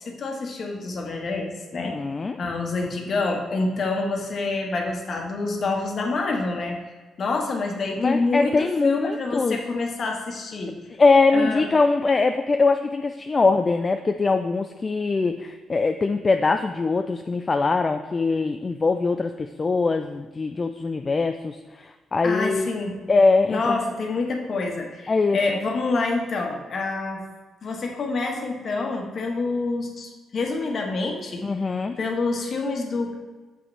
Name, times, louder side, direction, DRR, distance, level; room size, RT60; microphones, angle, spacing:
voice 1, 0.0-2.0 2.4-6.8 7.2-10.8 11.3-11.6 22.2-22.9 23.5-27.2 27.6-31.4 32.0-33.1, left 3 dB, 50° left, 1 dB, 1.3 m, -27 dB
voice 2, 1.7-2.4 8.0-9.6 11.0-22.7 23.1-23.8 25.1-25.4 31.4-32.0, left 3 dB, 30° left, 6 dB, 0.3 m, -22 dB
6.9 x 6.1 x 3.3 m, 1.3 s
cardioid pair, 90°, 0 cm